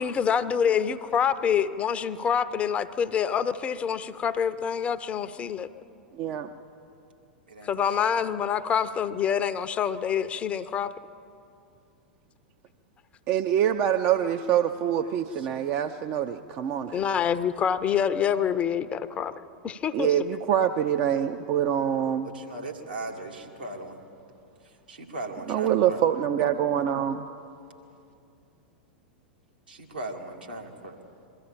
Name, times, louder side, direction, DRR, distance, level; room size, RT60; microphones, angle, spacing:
voice 1, 0.0-5.7 7.6-10.9 16.9-19.3 19.6-20.1, left 8 dB, 25° left, 12 dB, 0.6 m, -26 dB
voice 2, 6.1-6.5 13.3-17.0 19.9-22.3 25.5-27.3, right 10 dB, 40° right, 7 dB, 0.6 m, -25 dB
voice 3, 7.5-8.2 14.8-15.5 22.2-24.0 24.6-26.0 29.7-31.0, right 2 dB, 75° right, 0 dB, 2.2 m, -39 dB
22.0 x 14.0 x 8.9 m, 2.7 s
figure-of-eight pair, 90°, 5 cm